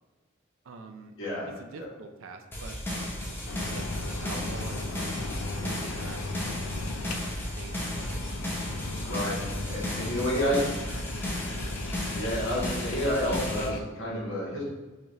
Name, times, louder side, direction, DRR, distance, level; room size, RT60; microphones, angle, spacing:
voice 1, 0.6-1.2 1.6-3.4 3.7-8.2 9.0-9.5 9.8-11.7, right 4 dB, 70° right, 6 dB, 0.4 m, -46 dB
sound 1, 2.5-13.7, left 1 dB, 10° left, 0.6 m, -34 dB
sound 2, 2.8-10.2, equal, 50° left, 1.5 m, -48 dB
sound 3, 3.5-13.8, left 3 dB, 85° left, 0.4 m, -38 dB
voice 2, 9.7-10.6 12.1-14.6, equal, 70° left, -5 dB, 1.3 m, -29 dB
5.2 x 2.5 x 3.0 m, 1.2 s
head